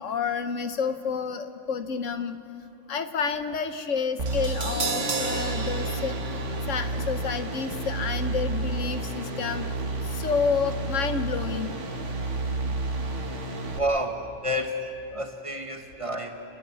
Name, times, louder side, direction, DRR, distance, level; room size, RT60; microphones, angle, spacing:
voice 1, 0.0-2.4 2.9-6.2 6.7-9.7 10.1-11.8, left 5 dB, 80° left, 8 dB, 1.3 m, -29 dB
sound 1, 4.2-13.8, right 2 dB, 70° right, 1.9 m, -31 dB
Crash cymbal, 4.3-10.4 10.7-10.8, right 4 dB, 40° right, 1.1 m, -36 dB
Bass guitar, 4.8-7.2, left 8 dB, 35° left, 1.2 m, -43 dB
voice 2, 13.7-14.7 15.1-16.4, equal, 25° right, 4 dB, 1.4 m, -29 dB
30.0 x 10.5 x 9.6 m, 2.6 s
omnidirectional pair, 1.3 m